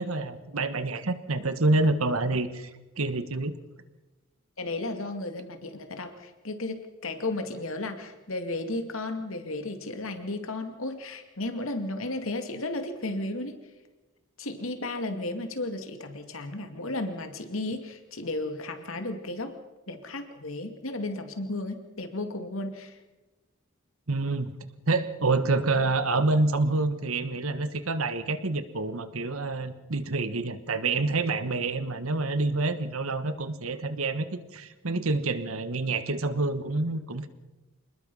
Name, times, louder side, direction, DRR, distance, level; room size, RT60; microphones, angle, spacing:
voice 1, 0.0-2.7 3.0-3.5 24.1-24.6 24.9-37.3, right 3 dB, 85° right, 11 dB, 1.5 m, -27 dB
voice 2, 4.6-13.6 14.4-19.5 19.9-23.0, left 2 dB, 75° left, 7 dB, 2.4 m, -34 dB
27.0 x 20.0 x 5.6 m, 1.1 s
head